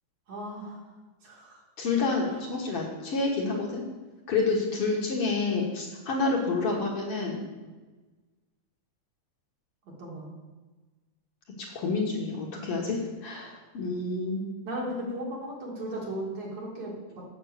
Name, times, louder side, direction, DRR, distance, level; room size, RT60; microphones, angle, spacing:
voice 1, 0.3-0.8 1.2-1.6 2.3-2.4 7.6-7.7 10.0-10.3 14.6-17.2, right 1 dB, 65° right, -3 dB, 3.4 m, -36 dB
voice 2, 1.8-3.8 4.3-7.4 11.7-14.4, left 3 dB, 55° left, -1 dB, 2.0 m, -28 dB
7.7 x 7.7 x 6.5 m, 1.2 s
omnidirectional pair, 3.4 m